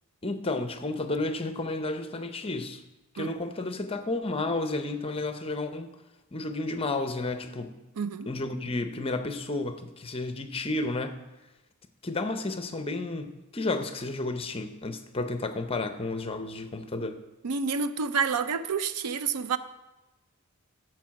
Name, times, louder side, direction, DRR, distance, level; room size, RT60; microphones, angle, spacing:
voice 1, 0.2-2.8 3.1-5.9 6.3-7.8 8.3-11.2 12.0-17.2, left 2 dB, 25° left, 0.7 m, -32 dB
voice 2, 8.0-8.3 17.4-19.6, right 5 dB, 90° right, 0.5 m, -29 dB
14.0 x 4.7 x 5.9 m
head